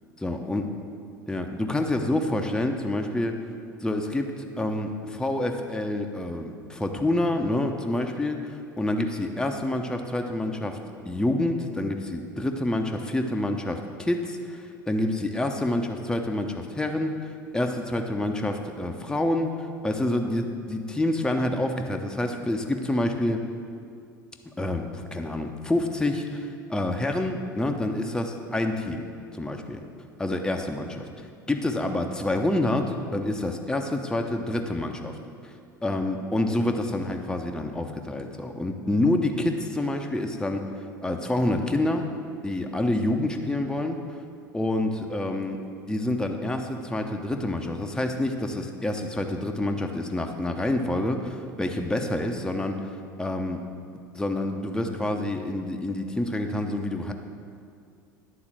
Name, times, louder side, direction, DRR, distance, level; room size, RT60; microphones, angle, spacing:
voice 1, 0.2-0.7 1.3-3.4 3.8-10.8 11.0-23.5 24.6-29.0 29.3-29.8 30.2-35.2 35.4-35.6 35.8-40.7 41.0-42.1 42.4-44.0 44.5-45.6 45.9-52.9 53.2-53.6 54.1-57.1, left 1 dB, 5° left, 3 dB, 0.8 m, -27 dB
11.0 x 3.9 x 7.4 m, 2.3 s
figure-of-eight pair, 70°, 11 cm